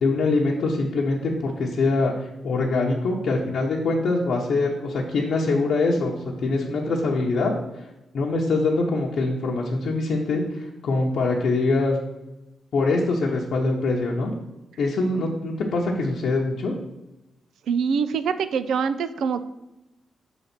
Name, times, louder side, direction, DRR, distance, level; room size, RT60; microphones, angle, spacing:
voice 1, 0.0-6.1 6.4-7.5 8.1-12.0 12.7-14.3 14.8-16.7, left 3 dB, 65° left, -3 dB, 0.9 m, -23 dB
voice 2, 17.7-19.4, right 6 dB, 80° right, 12 dB, 0.4 m, -24 dB
6.4 x 4.0 x 5.9 m, 0.98 s
cardioid pair, 130°, 0 cm